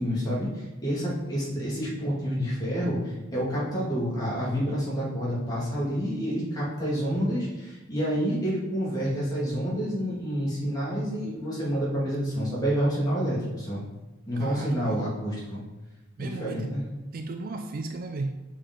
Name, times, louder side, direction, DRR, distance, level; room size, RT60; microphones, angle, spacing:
voice 1, 0.0-13.8 14.3-15.6 16.2-16.8, equal, 20° left, -7 dB, 2.1 m, -28 dB
voice 2, 14.4-15.1 16.2-16.8 17.1-18.3, right 3 dB, 45° right, 6 dB, 0.4 m, -34 dB
6.6 x 5.1 x 3.8 m, 1.1 s
head